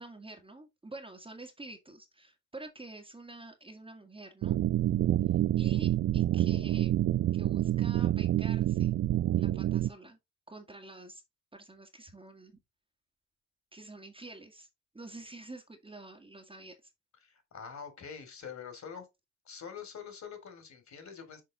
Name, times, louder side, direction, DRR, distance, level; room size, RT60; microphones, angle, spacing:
voice 1, 0.0-4.6 5.6-7.0 7.3-9.0 9.4-10.2 10.5-11.2 11.5-12.6 13.7-14.7 14.9-16.7, right 2 dB, 15° right, 1.7 m, -48 dB
sound 1, 4.4-9.9, right 13 dB, 35° right, 0.4 m, -27 dB
voice 2, 17.2-19.1 19.4-21.4, left 7 dB, 40° left, 3.1 m, -45 dB
6.8 x 4.8 x 3.8 m
hypercardioid pair, 60°, 41 cm